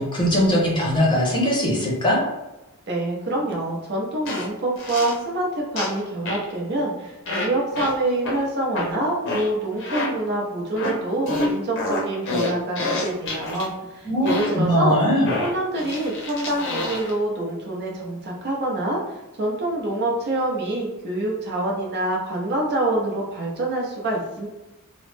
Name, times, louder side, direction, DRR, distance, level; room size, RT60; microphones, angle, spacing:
voice 1, 0.0-2.2 14.0-15.3, equal, 20° left, -3 dB, 0.7 m, -20 dB
voice 2, 2.9-15.0 15.4-24.5, right 1 dB, 50° right, -2 dB, 0.7 m, -26 dB
sound 1, 4.3-4.5 4.8-5.2 5.8-6.0 6.3-6.5 7.3-7.5 7.8-7.9 8.3-8.4 8.8-8.9 9.3-9.5 9.8-10.1 10.8-11.0 11.3-13.7 14.3-14.5 15.3-17.1, left 2 dB, 60° left, 0.7 m, -27 dB
3.0 x 2.0 x 3.2 m, 1.0 s
head